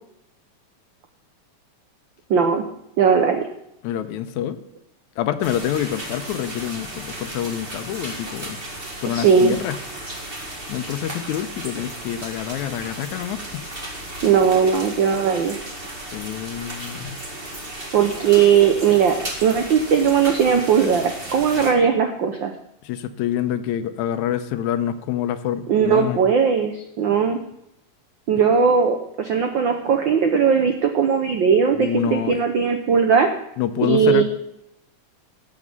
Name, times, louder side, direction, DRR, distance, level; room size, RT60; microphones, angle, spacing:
voice 1, 2.3-2.7 3.0-3.5 9.1-9.6 14.2-15.6 17.9-22.5 25.7-27.4 28.3-33.3 33.8-34.2, right 6 dB, 90° right, 5 dB, 1.0 m, -18 dB
voice 2, 3.8-4.6 5.2-8.6 9.0-9.8 10.7-13.6 16.1-17.2 22.8-26.2 31.7-32.4 33.6-34.2, left 10 dB, 90° left, 11 dB, 2.1 m, -26 dB
sound 1, 5.4-21.7, right 1 dB, 25° right, 1.6 m, -35 dB
12.5 x 8.3 x 5.4 m, 0.80 s
omnidirectional pair, 3.3 m